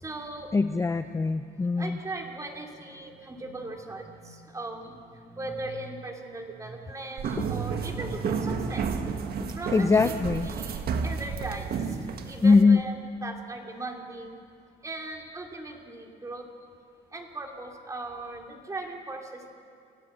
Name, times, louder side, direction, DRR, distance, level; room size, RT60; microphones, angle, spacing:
voice 1, 0.0-0.6 1.7-9.0 9.6-14.4 14.8-16.5 17.1-19.5, right 2 dB, 15° right, 2 dB, 2.7 m, -38 dB
voice 2, 0.5-2.0 7.4-7.5 9.4-10.5 12.4-12.8, left 4 dB, 15° left, 10 dB, 0.5 m, -22 dB
sound 1, 7.2-12.6, right 6 dB, 60° right, 1.7 m, -31 dB
28.5 x 15.0 x 8.3 m, 2.5 s
cardioid pair, 140°, 18 cm